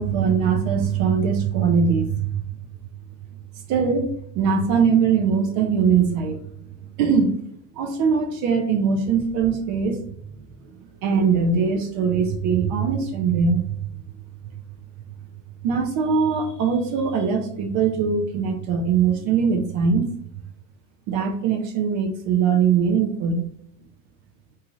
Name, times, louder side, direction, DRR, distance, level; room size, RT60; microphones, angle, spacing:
voice 1, 0.0-2.3 3.7-6.4 7.0-7.3 7.8-10.0 11.0-13.8 15.6-20.1 21.1-23.4, right 6 dB, 50° right, 3 dB, 0.5 m, -21 dB
2.7 x 2.4 x 3.0 m, 0.66 s
cardioid pair, 165°, 39 cm